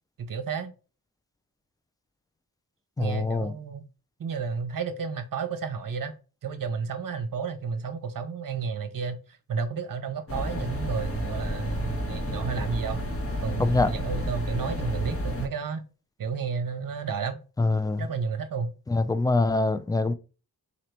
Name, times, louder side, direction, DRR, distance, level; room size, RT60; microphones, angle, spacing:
voice 1, 0.2-0.7 3.0-3.8 4.2-6.1 6.4-13.0 13.4-15.9 16.2-17.4 18.0-18.7, right 5 dB, 60° right, 0.8 m, -32 dB
voice 2, 3.0-3.5 13.6-13.9 17.6-18.1 18.9-20.1, left 2 dB, 10° left, 0.3 m, -24 dB
sound 1, 10.3-15.5, equal, 35° left, 1.0 m, -31 dB
4.1 x 2.9 x 3.2 m
cardioid pair, 55°, 38 cm